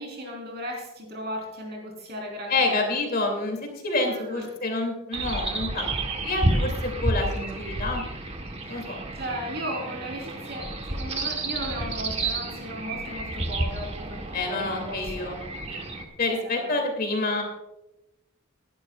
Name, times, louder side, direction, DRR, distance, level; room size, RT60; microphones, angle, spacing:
voice 1, 0.0-2.8 4.0-4.5 8.7-15.3 16.3-16.7, equal, 50° right, 1 dB, 4.1 m, -36 dB
voice 2, 2.5-5.9 6.2-8.0 8.7-9.0 14.3-15.4 15.7-15.8 16.2-17.4, left 2 dB, 45° left, 3 dB, 2.7 m, -28 dB
sound 1, 5.1-16.0, right 2 dB, 30° right, 1.2 m, -30 dB
19.5 x 11.5 x 2.4 m, 0.96 s
head